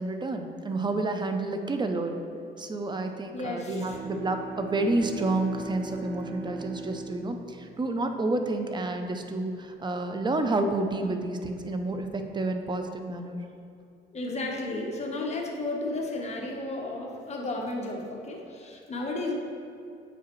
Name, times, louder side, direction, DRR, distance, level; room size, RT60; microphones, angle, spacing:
voice 1, 0.0-2.2 2.6-13.4, right 2 dB, 20° right, 5 dB, 0.6 m, -29 dB
voice 2, 3.3-4.0 13.1-13.2 14.1-19.3, left 2 dB, 35° left, -1 dB, 1.1 m, -33 dB
Bowed string instrument, 3.7-8.7, right 4 dB, 65° right, 0.8 m, -41 dB
7.8 x 4.8 x 3.1 m, 2.5 s
cardioid pair, 90°, 20 cm